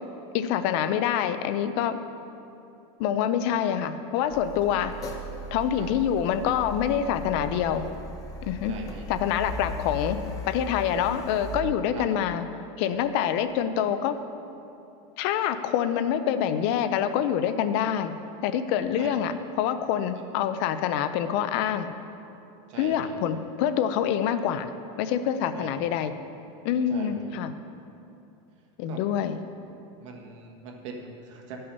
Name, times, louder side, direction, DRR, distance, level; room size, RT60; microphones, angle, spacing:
voice 1, 0.3-2.0 3.0-4.9 5.5-7.9 8.4-8.7 9.1-10.2 10.5-12.4 12.8-14.2 15.2-18.1 18.4-21.9 22.8-24.7 25.0-26.1 26.6-27.5 28.8-29.4, left 9 dB, 60° left, 11 dB, 0.5 m, -26 dB
Car, 4.3-11.6, equal, 20° left, 0.9 m, -38 dB
voice 2, 8.6-9.1 11.9-12.1 19.0-19.2 22.7-23.2 25.5-25.8 26.9-27.3 28.9-29.0 30.0-31.6, right 4 dB, 85° right, 1 dB, 1.4 m, -41 dB
12.0 x 5.5 x 5.4 m, 2.8 s
supercardioid pair, 155°, 15 cm